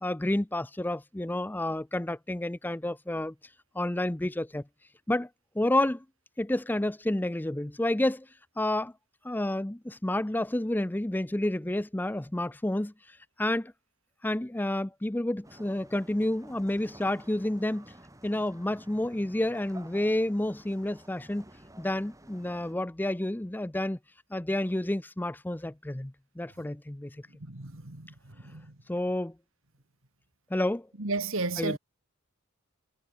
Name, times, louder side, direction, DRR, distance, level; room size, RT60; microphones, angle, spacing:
voice 1, 0.0-3.3 3.7-4.6 5.1-5.3 5.6-6.0 6.4-8.3 8.6-8.9 9.2-13.7 14.2-17.9 18.2-21.5 21.8-24.0 24.3-27.2 28.9-29.3 30.5-30.9 31.6-31.8, left 1 dB, 10° left, 0.5 m, -30 dB
sound 1, 15.4-22.7, right 1 dB, 15° right, 4.4 m, -52 dB
voice 2, 27.5-28.1 28.4-28.7 31.0-31.8, right 3 dB, 65° right, 2.1 m, -32 dB
head